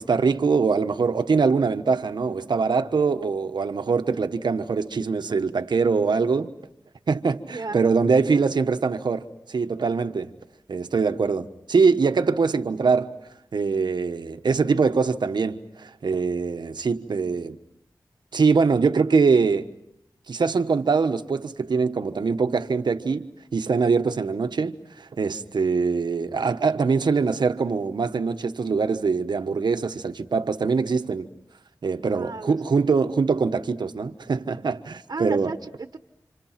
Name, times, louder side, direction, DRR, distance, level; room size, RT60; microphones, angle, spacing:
voice 1, 0.0-6.5 7.1-10.3 10.7-13.1 13.5-17.6 18.3-19.7 20.3-23.3 23.5-31.3 31.8-35.5, right 5 dB, 85° right, 1.3 m, -23 dB
voice 2, 7.4-7.8 8.3-8.4 32.1-32.6 35.1-36.0, right 3 dB, 65° right, 1.3 m, -33 dB
30.0 x 26.5 x 5.9 m
wide cardioid pair, 55°, 7 cm